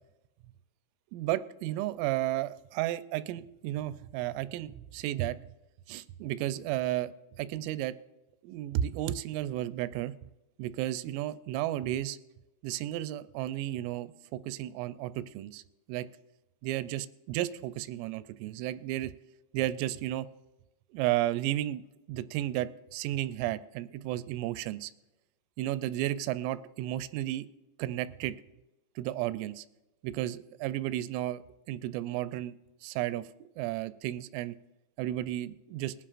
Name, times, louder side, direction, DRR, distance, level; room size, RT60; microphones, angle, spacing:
voice 1, 1.1-5.4 5.9-7.9 8.4-10.1 10.6-12.2 12.6-15.6 15.9-16.1 16.6-19.1 19.5-20.3 20.9-21.8 22.1-24.9 25.6-27.5 27.8-28.4 29.0-29.6 30.0-31.4 31.7-32.6 32.8-33.3 33.6-34.6 35.0-35.9, right 14 dB, 90° right, 13 dB, 3.1 m, -33 dB
21.0 x 9.9 x 2.5 m, 1.0 s
omnidirectional pair, 5.7 m